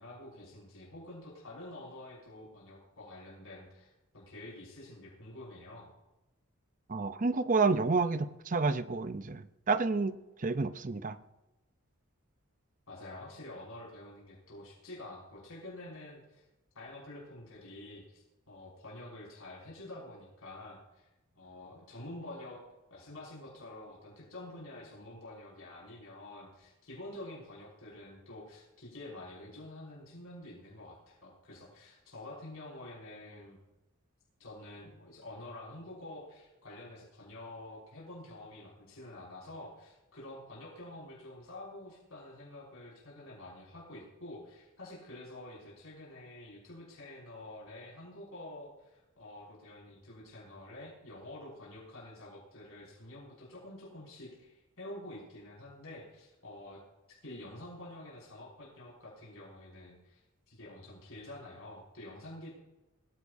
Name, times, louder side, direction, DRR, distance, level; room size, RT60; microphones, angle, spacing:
voice 1, 0.0-5.9 12.9-16.4 16.7-21.1 21.4-22.6 22.9-33.6 34.4-56.8 57.1-62.5, left 1 dB, 70° left, -6 dB, 6.0 m, -48 dB
voice 2, 6.9-11.2, right 4 dB, 35° right, 12 dB, 0.6 m, -30 dB
22.5 x 15.0 x 2.7 m, 1.0 s
head